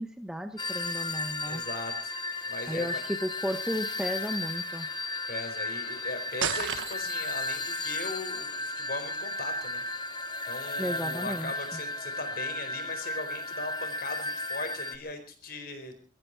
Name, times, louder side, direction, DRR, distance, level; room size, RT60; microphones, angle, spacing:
voice 1, 0.0-1.6 2.7-4.9 10.8-11.5, equal, 5° right, 8 dB, 0.9 m, -34 dB
sound 1, 0.6-15.0, left 2 dB, 25° left, 1.2 m, -34 dB
voice 2, 1.4-2.1 2.5-3.0 5.3-9.8 10.5-16.0, left 2 dB, 50° left, 7 dB, 4.4 m, -39 dB
sound 2, 6.4-7.3, right 8 dB, 85° right, 1.1 m, -32 dB
23.0 x 14.0 x 4.6 m, 0.40 s
head